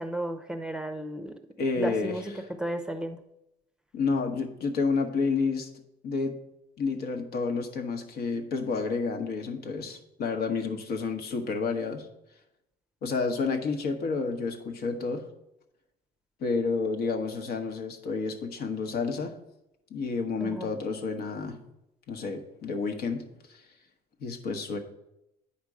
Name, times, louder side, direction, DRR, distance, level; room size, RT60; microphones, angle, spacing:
voice 1, 0.0-1.4 1.8-2.2 2.6-3.2 20.4-20.7, right 1 dB, 5° right, 7 dB, 0.6 m, -33 dB
voice 2, 1.6-2.2 3.9-5.7 6.0-6.4 6.8-12.1 13.0-15.2 16.4-19.4 19.9-21.6 22.1-23.2 23.5-23.6 24.2-24.8, left 4 dB, 70° left, 4 dB, 1.2 m, -30 dB
8.8 x 5.2 x 4.9 m, 0.86 s
cardioid pair, 110°, 17 cm